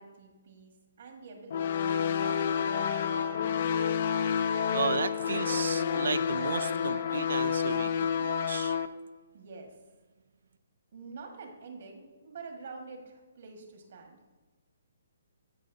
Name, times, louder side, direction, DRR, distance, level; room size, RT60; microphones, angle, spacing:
voice 1, 0.0-3.3 9.3-9.8 10.9-14.2, right 4 dB, 55° right, 3 dB, 1.5 m, -47 dB
sound 1, 1.5-8.9, left 7 dB, 45° left, 0.4 m, -29 dB
voice 2, 4.7-8.8, right 5 dB, 75° right, 15 dB, 0.4 m, -34 dB
14.5 x 5.3 x 2.7 m, 1.3 s
hypercardioid pair, 165°, 0 cm